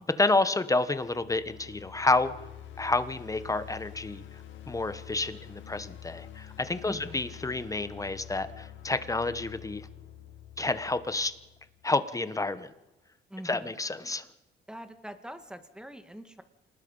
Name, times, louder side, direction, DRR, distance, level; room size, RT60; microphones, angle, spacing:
voice 1, 0.2-2.3 2.8-4.2 4.7-9.9 10.6-11.3 11.8-12.7 13.4-14.2, left 2 dB, 15° left, 12 dB, 1.3 m, -29 dB
sound 1, 1.0-12.0, left 11 dB, 75° left, 2.0 m, -47 dB
voice 2, 6.9-7.2 13.3-13.7 14.7-16.4, equal, 5° right, 8 dB, 2.1 m, -43 dB
27.5 x 19.5 x 5.7 m, 1.0 s
cardioid pair, 90°, 20 cm